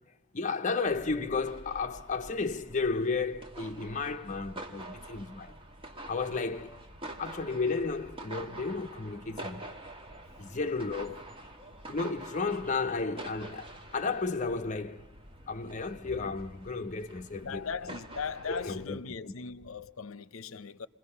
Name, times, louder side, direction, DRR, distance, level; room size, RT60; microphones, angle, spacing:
voice 1, 0.3-5.5 6.1-6.8 7.2-9.6 10.4-11.3 11.9-15.1 15.5-17.6 18.5-19.3, left 4 dB, 40° left, 0.7 m, -33 dB
sound 1, 0.8-18.9, right 1 dB, 25° right, 1.4 m, -47 dB
voice 2, 17.4-20.9, left 5 dB, 80° left, 0.6 m, -39 dB
28.5 x 21.5 x 5.6 m
head